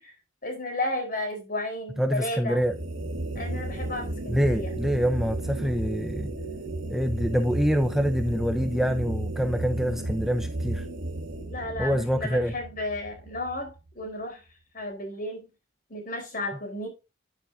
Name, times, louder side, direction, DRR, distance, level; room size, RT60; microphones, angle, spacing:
voice 1, 0.4-2.6 3.3-4.7 11.5-14.4 14.7-15.4 15.9-16.9, left 1 dB, 50° left, 4.4 m, -33 dB
voice 2, 2.0-2.7 4.3-6.3 6.9-10.9 11.8-12.5, equal, ahead, 0.7 m, -26 dB
sound 1, 2.6-13.9, right 1 dB, 80° right, 2.3 m, -33 dB
10.5 x 9.5 x 2.7 m
head